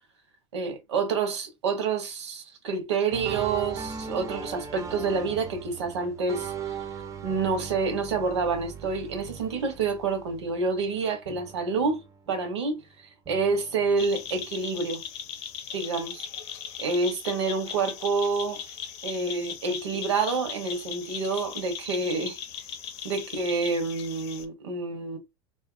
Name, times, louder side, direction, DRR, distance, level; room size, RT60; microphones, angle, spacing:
voice 1, 0.5-6.8 7.2-12.8 13.3-15.0 15.7-16.3 16.8-18.7 19.0-22.4 23.0-25.2, right 4 dB, 85° right, 0.8 m, -28 dB
sound 1, 3.1-11.0 11.3-12.8 13.3-14.8, right 6 dB, 20° right, 0.5 m, -39 dB
sound 2, 14.0-24.5, left 8 dB, 70° left, 0.6 m, -39 dB
2.5 x 2.4 x 2.4 m
hypercardioid pair, 95°, 14 cm